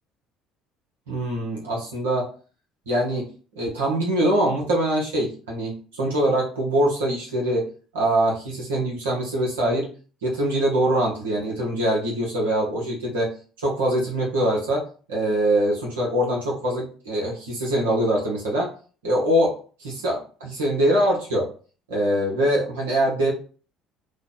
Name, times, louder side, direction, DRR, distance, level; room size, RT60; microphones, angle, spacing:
voice 1, 1.1-2.3 2.9-3.3 3.6-7.7 7.9-9.9 10.2-13.3 13.6-14.8 15.1-18.7 19.0-21.5 21.9-23.3, right 1 dB, 90° right, -2 dB, 0.9 m, -23 dB
3.2 x 2.2 x 3.9 m, 0.39 s
hypercardioid pair, 65°, 0 cm